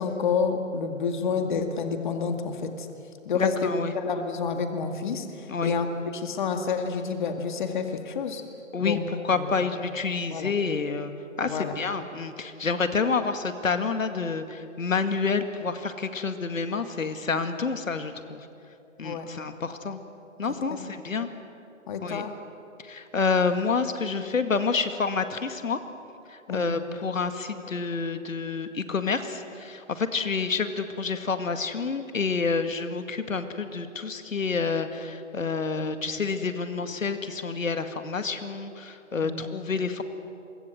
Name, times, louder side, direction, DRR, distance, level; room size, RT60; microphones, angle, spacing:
voice 1, 0.0-2.9 3.3-8.4 8.8-9.0 9.3-9.5 10.3-10.5 11.4-11.7 19.0-19.3 20.8-20.9 21.2-21.3 21.9-22.3 26.5-26.7 39.2-39.5, left 5 dB, 35° left, 6 dB, 2.1 m, -29 dB
voice 2, 3.3-3.9 5.5-5.7 8.7-11.1 11.4-18.5 19.0-20.0 20.4-21.3 22.0-22.3 22.8-25.8 26.3-40.0, left 4 dB, 80° left, 8 dB, 2.2 m, -28 dB
29.0 x 24.0 x 7.9 m, 2.7 s
hypercardioid pair, 160°, 39 cm